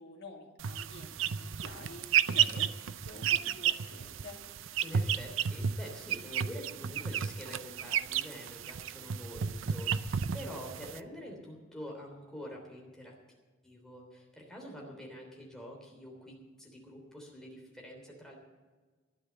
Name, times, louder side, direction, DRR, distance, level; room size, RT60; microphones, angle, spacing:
voice 1, 0.0-4.4, left 2 dB, 60° left, -1 dB, 2.5 m, -49 dB
sound 1, 0.6-11.0, right 8 dB, 75° right, 0.5 m, -32 dB
voice 2, 4.8-13.1 13.6-18.4, equal, 5° left, -1 dB, 3.3 m, -46 dB
12.5 x 9.9 x 8.0 m, 1.4 s
head